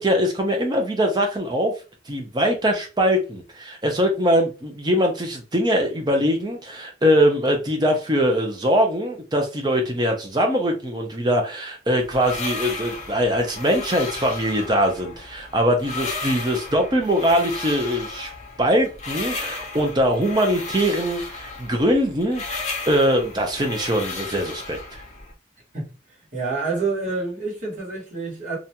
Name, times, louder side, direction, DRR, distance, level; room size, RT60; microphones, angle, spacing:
voice 1, 0.0-1.7 2.1-18.3 18.6-24.8, equal, 20° right, 0.5 m, -22 dB
sound 1, 12.0-25.3, left 3 dB, 35° left, 0.6 m, -34 dB
voice 2, 26.3-28.6, right 3 dB, 40° right, 1.3 m, -27 dB
2.5 x 2.2 x 2.8 m
head